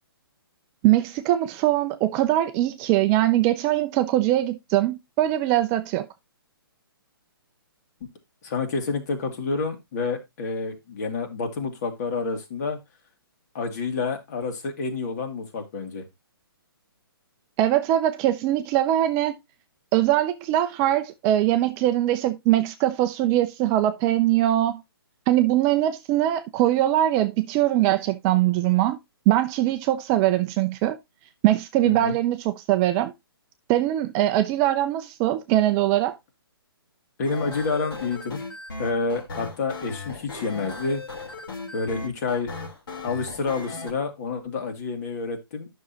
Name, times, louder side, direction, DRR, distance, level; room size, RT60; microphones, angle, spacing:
voice 1, 0.8-6.1 17.6-19.4 19.9-24.8 25.3-29.0 29.3-31.0 31.4-33.1 33.7-36.2, right 14 dB, 20° right, 0.5 m, -22 dB
voice 2, 8.4-12.8 13.5-16.0 31.9-32.2 37.2-38.4 38.8-41.0 41.7-42.5 43.0-45.7, left 4 dB, 45° left, 2.3 m, -28 dB
sound 1, 37.2-43.9, left 3 dB, 75° left, 3.8 m, -37 dB
9.9 x 6.3 x 2.9 m
hypercardioid pair, 145°, 13 cm